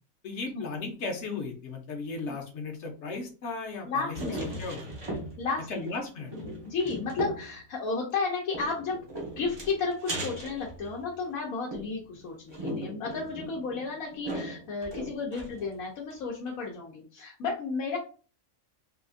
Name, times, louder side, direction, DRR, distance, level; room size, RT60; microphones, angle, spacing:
voice 1, 0.2-4.9 5.7-6.3, left 3 dB, 60° left, 3 dB, 1.0 m, -36 dB
voice 2, 3.8-4.4 5.4-5.9 6.6-9.1 9.4-18.0, left 4 dB, 90° left, -2 dB, 1.2 m, -33 dB
sound 1, 4.1-5.6 5.9-6.0 6.3-7.5 8.5-11.3 11.7-15.7 16.1-16.2 16.5-16.6, right 1 dB, 40° right, 0.4 m, -38 dB
3.5 x 2.4 x 2.5 m, 0.37 s
omnidirectional pair, 1.4 m